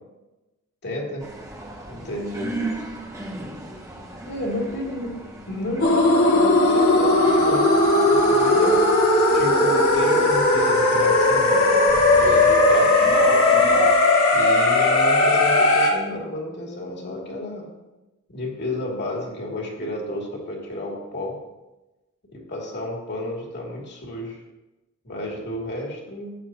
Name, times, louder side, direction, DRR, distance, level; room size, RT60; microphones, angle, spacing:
voice 1, 0.8-1.3 1.9-2.5 4.2-5.2 5.5-7.7 8.1-8.8 9.3-11.9 12.2-13.1 14.3-17.7 18.3-21.4 22.3-24.4 25.0-26.4, left 1 dB, 55° left, -1 dB, 2.6 m, -31 dB
sound 1, 1.2-13.9, right 1 dB, 15° right, 1.3 m, -36 dB
sound 2, 5.8-15.9, left 2 dB, 80° left, 2.2 m, -17 dB
15.0 x 9.1 x 2.9 m, 1.0 s
head